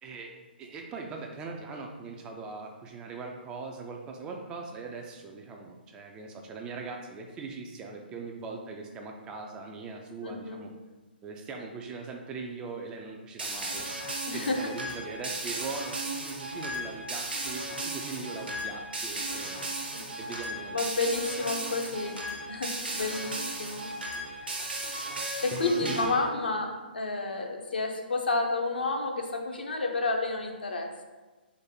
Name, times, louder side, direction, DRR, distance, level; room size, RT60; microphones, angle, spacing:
voice 1, 0.0-0.3 0.6-10.7 11.2-20.8 23.1-23.2 25.5-26.1, right 4 dB, 15° right, 2 dB, 0.3 m, -40 dB
voice 2, 10.2-10.6 14.3-14.6 19.9-20.0 20.7-24.5 25.1-31.0, left 3 dB, 65° left, 2 dB, 0.6 m, -31 dB
sound 1, 13.4-26.3, right 1 dB, 70° right, 0.9 m, -36 dB
3.9 x 2.6 x 4.3 m, 1.2 s
figure-of-eight pair, 125°, 6 cm